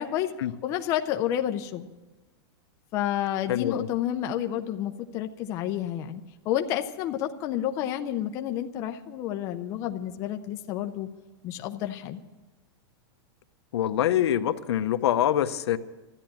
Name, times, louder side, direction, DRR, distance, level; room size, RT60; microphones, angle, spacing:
voice 1, 0.0-0.3 0.6-1.9 2.9-11.1 11.4-12.2, left 11 dB, 20° left, 5 dB, 0.5 m, -30 dB
voice 2, 3.5-3.9 13.7-15.8, left 11 dB, 80° left, 9 dB, 0.9 m, -25 dB
13.5 x 9.9 x 9.2 m, 1.2 s
supercardioid pair, 180°, 14 cm